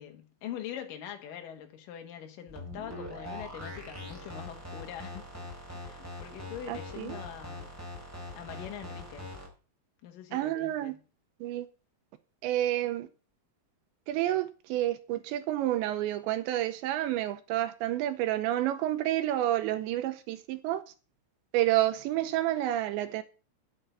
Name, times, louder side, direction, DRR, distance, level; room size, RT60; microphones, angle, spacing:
voice 1, 0.0-5.3 5.8-7.8 8.3-9.3 10.0-10.9, left 10 dB, 65° left, 2.3 m, -43 dB
sound 1, 2.5-9.5, left 1 dB, 5° right, 3.4 m, -42 dB
voice 2, 6.7-7.2 10.3-10.9 11.4-11.7 12.4-13.1 14.1-20.8 21.5-23.2, right 14 dB, 80° right, 2.9 m, -29 dB
9.2 x 8.5 x 5.6 m
omnidirectional pair, 5.4 m